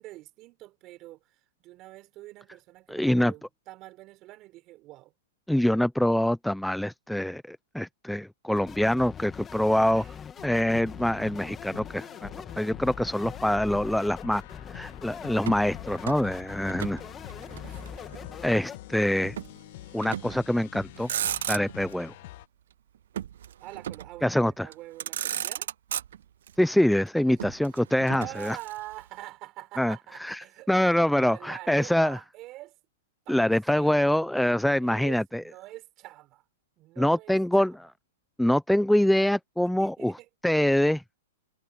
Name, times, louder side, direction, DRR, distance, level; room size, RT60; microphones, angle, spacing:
voice 1, 0.0-5.1 9.9-10.1 16.9-17.6 23.6-25.7 27.2-27.7 28.1-32.8 33.3-34.2 34.8-36.4 36.8-37.7 39.8-40.3, right 18 dB, 35° right, 4.3 m, -45 dB
voice 2, 2.9-3.3 5.5-10.0 10.4-14.4 14.7-17.0 18.4-19.4 19.9-21.1 21.5-22.1 24.2-24.7 26.6-28.6 29.8-32.2 33.3-35.4 37.0-37.9 38.4-41.0, left 1 dB, ahead, 0.5 m, -25 dB
sound 1, 8.5-18.8, left 7 dB, 20° left, 2.0 m, -42 dB
sound 2, 10.4-22.5, left 17 dB, 55° left, 1.2 m, -47 dB
Motor vehicle (road), 15.4-17.0 17.3-18.4 19.4-19.6 20.0-20.5 20.9-22.0 23.1-24.2 24.7-24.8 25.0-26.5 27.4-29.0, right 10 dB, 70° right, 0.3 m, -35 dB
hypercardioid pair, 135°, 0 cm